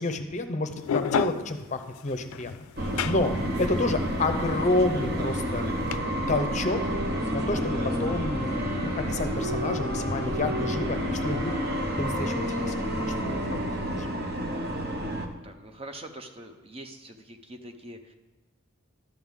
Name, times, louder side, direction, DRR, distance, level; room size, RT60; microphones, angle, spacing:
voice 1, 0.0-2.5 3.0-3.3 3.6-5.9 6.3-6.8 7.3-11.6 12.0-12.8 13.1-13.6 14.0-14.1, left 2 dB, 35° left, 7 dB, 0.6 m, -29 dB
sound 1, 0.8-6.0, left 7 dB, 90° left, 0.3 m, -32 dB
sound 2, 2.8-15.3, equal, 50° right, 0.9 m, -30 dB
Wind instrument woodwind instrument, 6.6-14.2, left 1 dB, 90° right, 2.9 m, -35 dB
voice 2, 15.4-18.1, right 1 dB, 25° right, 6 dB, 0.6 m, -44 dB
11.5 x 7.8 x 3.7 m, 1.3 s
head